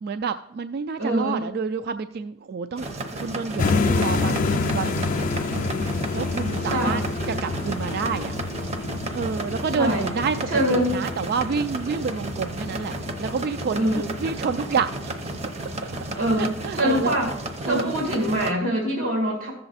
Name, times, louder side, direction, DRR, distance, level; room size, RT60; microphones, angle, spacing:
voice 1, 0.0-5.2 6.1-7.0 7.3-8.4 9.1-10.4 10.7-17.1 17.7-17.9, right 5 dB, 50° right, 11 dB, 0.3 m, -29 dB
voice 2, 1.0-1.4 6.6-7.1 9.8-10.1 10.5-11.0 13.7-14.1 16.2-17.3 17.6-19.5, equal, 85° right, 0 dB, 2.0 m, -24 dB
sound 1, 2.8-18.5, right 2 dB, 35° right, 0.7 m, -33 dB
sound 2, 3.6-17.6, left 3 dB, 40° left, 0.4 m, -29 dB
14.5 x 6.8 x 4.1 m, 0.82 s
head